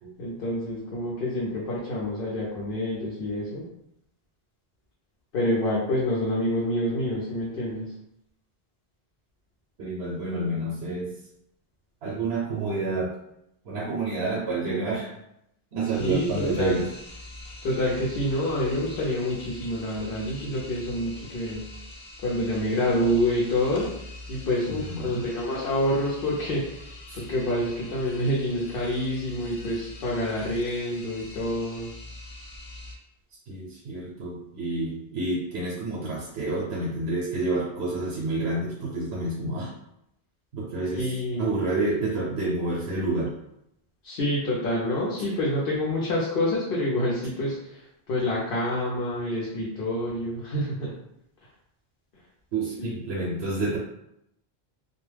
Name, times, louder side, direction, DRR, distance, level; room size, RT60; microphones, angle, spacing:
voice 1, 0.2-3.7 5.3-7.9 16.0-16.8 17.6-21.6 22.2-23.9 24.3-26.9 27.3-31.9 40.9-41.5 44.0-50.9 52.8-52.9, left 1 dB, 70° left, -5 dB, 0.8 m, -27 dB
voice 2, 9.8-11.1 12.0-13.1 13.6-15.2 15.7-16.9 24.9-25.3 27.1-27.2 30.4-30.5 33.5-39.7 40.5-41.1 41.4-43.3 52.5-53.8, right 2 dB, 90° right, -4 dB, 0.9 m, -29 dB
sound 1, 15.9-33.0, left 2 dB, 50° left, 0.4 m, -44 dB
2.2 x 2.1 x 3.2 m, 0.79 s
omnidirectional pair, 1.0 m